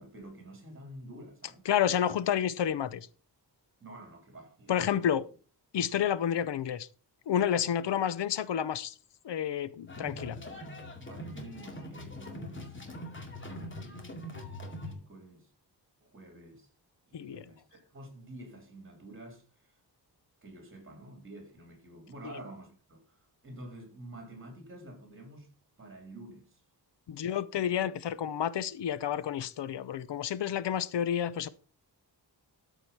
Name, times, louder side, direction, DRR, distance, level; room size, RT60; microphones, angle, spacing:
voice 1, 0.0-1.6 3.8-5.1 11.0-12.8 13.4-14.1 14.8-15.5 16.0-16.7 17.1-19.8 20.4-26.6, right 1 dB, 30° right, 3.7 m, -49 dB
voice 2, 1.7-3.1 4.7-5.2 5.7-6.9 7.3-8.9 9.2-10.4 17.1-17.4 27.1-31.5, left 9 dB, 85° left, 0.8 m, -30 dB
sound 1, 9.9-14.9, left 1 dB, 30° left, 2.3 m, -42 dB
13.0 x 5.1 x 5.8 m
wide cardioid pair, 175°, 41 cm